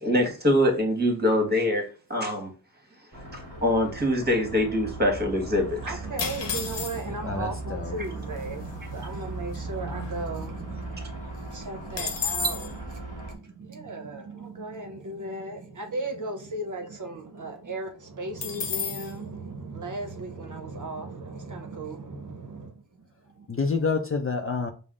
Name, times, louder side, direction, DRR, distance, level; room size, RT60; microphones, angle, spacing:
voice 1, 0.0-1.8 2.1-2.5 3.6-6.0, left 1 dB, 25° right, 1.4 m, -24 dB
sound 1, 3.1-13.3, right 2 dB, 20° left, 1.5 m, -38 dB
voice 2, 5.7-23.6, right 2 dB, 45° right, 0.7 m, -36 dB
sound 2, 6.2-7.3 8.1-8.2 8.4-8.7 9.1-10.6 10.9-11.0 11.3-12.7 18.4-19.1, left 6 dB, 90° left, 0.8 m, -32 dB
voice 3, 7.2-7.9 23.5-24.7, left 4 dB, 35° left, 0.5 m, -28 dB
5.3 x 2.0 x 3.7 m
wide cardioid pair, 90°, 41 cm